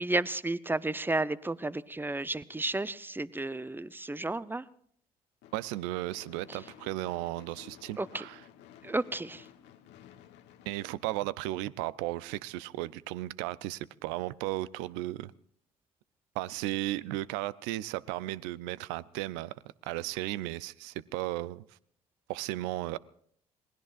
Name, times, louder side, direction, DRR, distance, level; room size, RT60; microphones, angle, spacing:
voice 1, 0.0-4.6 8.0-8.2 8.8-9.5, right 2 dB, 10° right, 17 dB, 0.7 m, -32 dB
Gunshot gunfire / Fireworks, 5.4-11.7, left 10 dB, 65° left, 1.2 m, -55 dB
voice 2, 5.5-8.4 10.7-15.3 16.3-19.5 19.8-21.6 22.3-23.0, right 16 dB, 70° right, 19 dB, 0.5 m, -35 dB
27.5 x 19.5 x 2.5 m, 0.62 s
hypercardioid pair, 50°, 19 cm